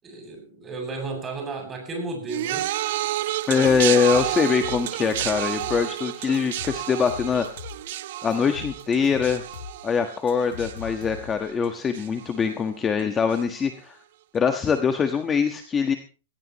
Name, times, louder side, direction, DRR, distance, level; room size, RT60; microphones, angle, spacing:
voice 1, 0.0-2.7, right 3 dB, 15° right, 3 dB, 7.6 m, -33 dB
sound 1, 2.3-11.7 11.9-12.5 13.3-13.4, right 14 dB, 50° right, 0.9 m, -30 dB
voice 2, 3.5-7.5 8.2-9.4 9.8-14.0 14.3-15.9, left 6 dB, 15° left, 6 dB, 1.3 m, -23 dB
sound 2, 3.6-6.0 6.3-8.0 8.3-11.5, left 7 dB, 80° left, 2.8 m, -40 dB
19.5 x 18.0 x 3.1 m, 0.35 s
hypercardioid pair, 155°, 0 cm